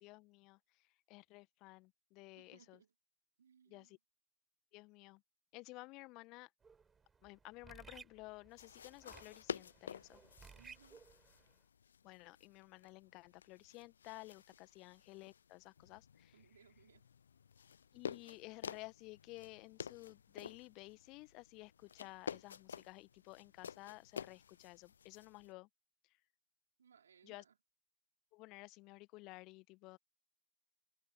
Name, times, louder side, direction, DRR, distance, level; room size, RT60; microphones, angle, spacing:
voice 1, 0.0-0.6 1.1-2.8 3.7-4.0 4.7-5.2 5.5-6.5 7.2-10.2 12.0-16.3 17.9-25.7 27.2-27.4 28.3-30.0, left 23 dB, 40° left, 1.7 m, -54 dB
voice 2, 2.3-2.9 3.4-4.0 10.5-11.0 16.3-17.1 26.8-27.6, right 7 dB, 70° right, 4.8 m, -66 dB
sound 1, 6.6-11.5, right 5 dB, 15° right, 6.6 m, -60 dB
sound 2, 8.5-25.5, left 7 dB, 70° left, 0.5 m, -51 dB
figure-of-eight pair, 90°, 0 cm